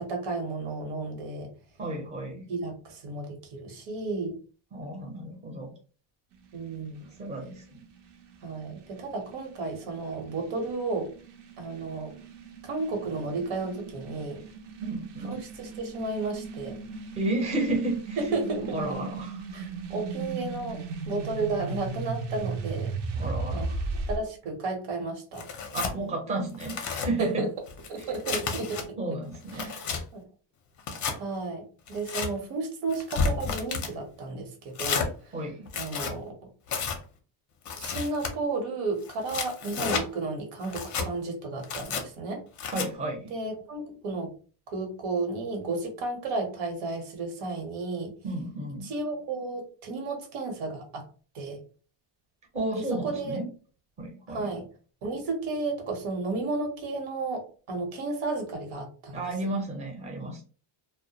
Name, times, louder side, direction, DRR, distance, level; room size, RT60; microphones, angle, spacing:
voice 1, 0.0-1.5 2.5-4.4 6.5-7.1 8.4-11.1 11.6-12.1 12.6-14.4 15.2-16.8 18.2-18.7 19.5-22.9 23.5-23.7 24.1-25.5 27.2-27.5 27.9-28.8 29.5-29.9 30.1-30.2 31.1-35.1 35.8-36.3 37.8-42.4 43.3-44.3 44.7-48.1 48.8-51.1 51.3-51.6 52.7-53.4 54.3-54.6 55.0-59.2, right 3 dB, 80° right, 3 dB, 1.0 m, -33 dB
voice 2, 1.8-2.4 4.7-5.7 7.2-7.8 14.8-15.5 17.2-18.3 18.7-19.6 23.2-23.9 25.7-27.4 28.0-28.1 29.0-29.7 35.3-35.7 42.7-43.3 48.2-48.9 52.5-53.5 54.0-54.5 59.1-60.4, right 2 dB, 15° right, 0 dB, 0.6 m, -32 dB
sound 1, 6.3-24.2, right 3 dB, 60° right, 0.6 m, -38 dB
Tearing, 25.4-26.0 26.5-27.1 27.7-28.8 29.3-30.0 30.8-31.2 31.9-32.3 32.9-33.9 34.8-35.1 35.7-36.1 36.7-37.0 37.7-38.3 39.0-40.1 40.6-41.1 41.6-42.0 42.6-42.9, left 5 dB, 40° left, 0.5 m, -31 dB
2.1 x 2.1 x 2.7 m, 0.38 s
cardioid pair, 150°, 47 cm